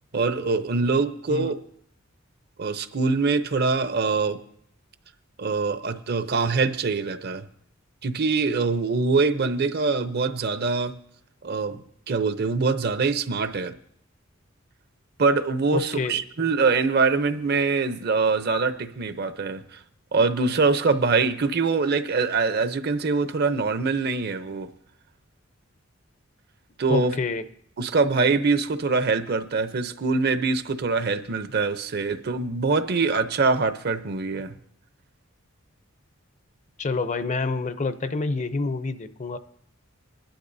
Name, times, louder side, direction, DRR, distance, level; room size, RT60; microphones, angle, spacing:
voice 1, 0.1-1.6 2.6-4.4 5.4-7.5 8.0-10.9 11.4-11.8 12.1-13.7 15.2-19.8 20.1-24.7 26.8-27.1 27.8-34.6, right 4 dB, 55° right, 0.7 m, -24 dB
voice 2, 15.7-16.2 26.9-27.4 36.8-39.4, left 3 dB, 35° left, 0.6 m, -27 dB
21.0 x 11.5 x 2.7 m
head